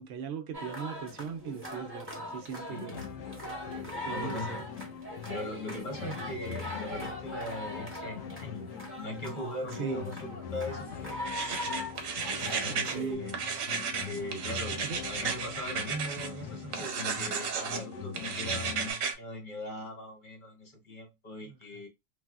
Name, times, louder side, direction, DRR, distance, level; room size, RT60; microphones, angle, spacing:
voice 1, 0.0-3.1 3.8-4.6 9.8-10.0 11.5-11.6 12.4-13.2 14.1-14.2 14.8-15.0 21.4-21.6, right 7 dB, 65° right, 0.8 m, -39 dB
sound 1, 0.5-13.1, left 1 dB, 10° right, 0.9 m, -41 dB
voice 2, 2.5-3.1 4.0-4.7 5.3-8.7 8.9-11.2 12.4-13.4 14.0-21.9, left 1 dB, 45° left, 1.0 m, -40 dB
sound 2, 2.9-18.9, left 7 dB, 75° left, 0.9 m, -43 dB
sound 3, 11.3-13.0 13.3-16.3 16.7-17.8 18.1-19.1, right 6 dB, 85° right, 1.1 m, -34 dB
3.2 x 2.4 x 2.3 m
omnidirectional pair, 1.3 m